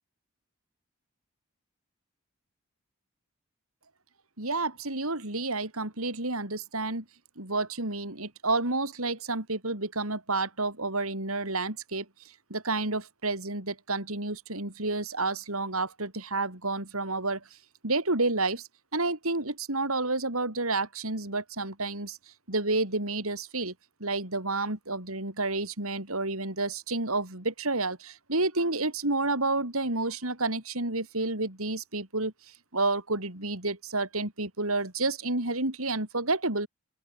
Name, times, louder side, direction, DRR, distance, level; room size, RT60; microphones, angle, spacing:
voice 1, 4.4-7.0 7.4-12.0 12.5-17.4 17.8-18.6 18.9-22.2 22.5-23.7 24.0-32.3 32.7-36.7, right 2 dB, 75° right, 6.2 m, -30 dB
open air
head